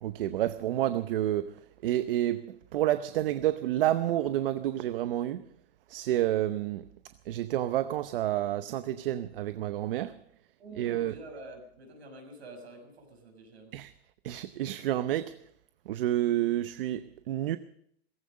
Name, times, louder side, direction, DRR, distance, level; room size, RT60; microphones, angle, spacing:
voice 1, 0.0-5.4 5.9-6.9 7.3-10.2 10.7-11.2 13.7-13.9 14.2-15.4 15.9-17.6, right 13 dB, 60° right, 0.8 m, -29 dB
voice 2, 10.6-13.8, right 1 dB, 90° right, 6.7 m, -47 dB
17.5 x 15.5 x 5.2 m
hypercardioid pair, 150°, 31 cm